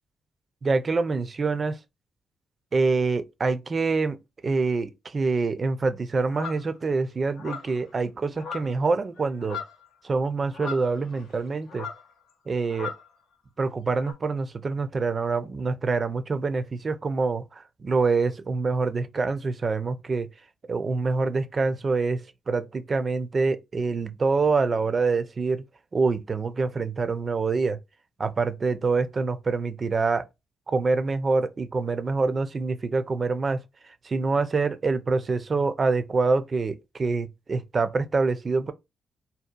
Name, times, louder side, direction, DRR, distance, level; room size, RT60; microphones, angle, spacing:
voice 1, 0.6-1.8 2.7-4.2 4.4-9.6 10.0-11.9 12.5-12.9 13.6-20.3 20.7-25.6 25.9-27.8 28.2-30.3 30.7-33.6 34.0-38.7, right 4 dB, 45° right, 0.3 m, -26 dB
sound 1, 6.3-6.7 7.4-7.8 8.4-8.9 9.2-9.9 10.5-11.4 11.7-12.1 12.7-13.1 14.0-14.1, left 6 dB, 90° left, 0.4 m, -37 dB
2.8 x 2.1 x 2.2 m
cardioid pair, 60°, 0 cm